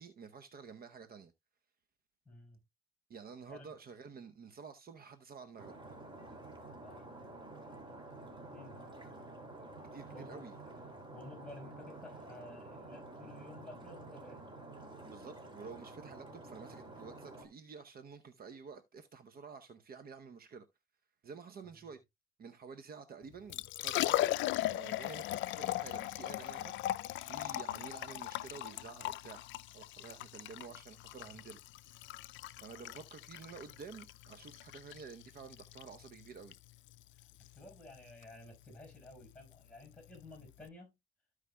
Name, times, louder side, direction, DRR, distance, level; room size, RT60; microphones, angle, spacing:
voice 1, 0.0-1.3 3.1-6.0 9.9-10.5 15.0-20.6 21.2-22.0 22.4-24.4 24.7-29.4 29.7-31.6 32.6-36.5, right 5 dB, 45° right, 0.8 m, -50 dB
voice 2, 2.3-2.6 3.5-3.7 6.7-7.1 8.5-8.9 10.1-10.5 11.1-14.4 32.6-32.8 37.4-40.9, left 2 dB, 5° left, 5.2 m, -53 dB
Stream, 5.6-17.5, right 2 dB, 25° right, 2.5 m, -50 dB
Liquid, 23.3-40.7, left 15 dB, 65° left, 0.4 m, -39 dB
14.0 x 4.9 x 2.2 m
supercardioid pair, 75°, 21 cm